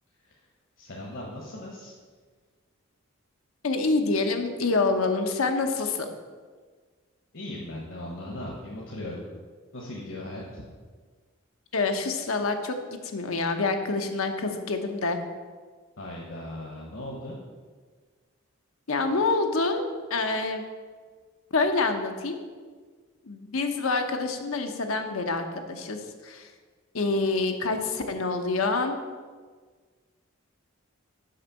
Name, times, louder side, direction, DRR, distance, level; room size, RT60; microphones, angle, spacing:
voice 1, 0.8-1.9 7.3-9.2 9.7-10.6 16.0-17.4, left 1 dB, 65° left, -3 dB, 1.2 m, -38 dB
voice 2, 3.6-6.1 11.7-12.8 13.1-15.2 18.9-19.8 20.1-20.6 21.5-22.4 23.3-26.5 26.9-29.0, left 3 dB, 90° left, 5 dB, 0.9 m, -26 dB
6.5 x 5.4 x 6.9 m, 1.5 s
head